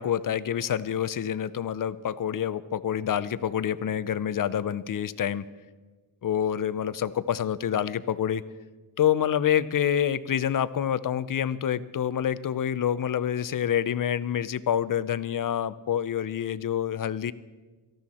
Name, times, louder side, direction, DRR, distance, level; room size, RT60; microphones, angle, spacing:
voice 1, 0.0-5.4 6.2-8.4 9.0-17.3, left 9 dB, 45° left, 16 dB, 0.6 m, -27 dB
18.5 x 14.0 x 4.3 m, 1.3 s
wide cardioid pair, 125°, 48 cm